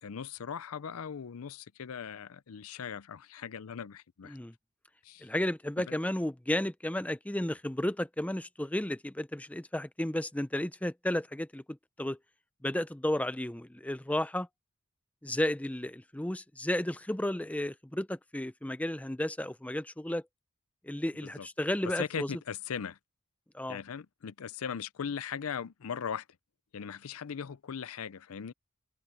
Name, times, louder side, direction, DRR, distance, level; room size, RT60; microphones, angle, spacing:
voice 1, 0.0-4.4 5.0-5.3 5.9-6.0 21.2-21.5 22.0-23.0 23.7-26.2 26.7-28.5, left 7 dB, 75° left, 0.5 m, -39 dB
voice 2, 5.2-12.2 12.6-14.5 15.2-20.2 20.8-22.3 23.5-23.8, left 1 dB, 5° left, 0.6 m, -33 dB
open air
head